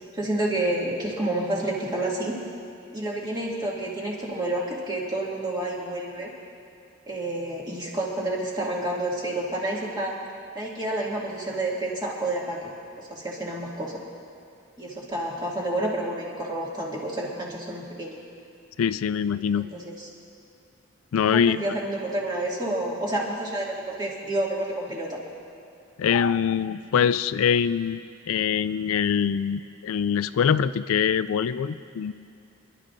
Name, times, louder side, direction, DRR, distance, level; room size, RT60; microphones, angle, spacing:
voice 1, 0.1-2.4 2.9-6.3 7.1-10.1 10.5-12.7 13.0-14.0 14.8-18.2 19.5-20.1 21.2-25.2, right 1 dB, 20° right, -5 dB, 2.3 m, -29 dB
voice 2, 18.8-19.7 21.1-21.6 26.0-28.0 28.3-32.1, left 7 dB, 80° left, 14 dB, 0.3 m, -23 dB
28.0 x 12.0 x 2.6 m, 2.5 s
head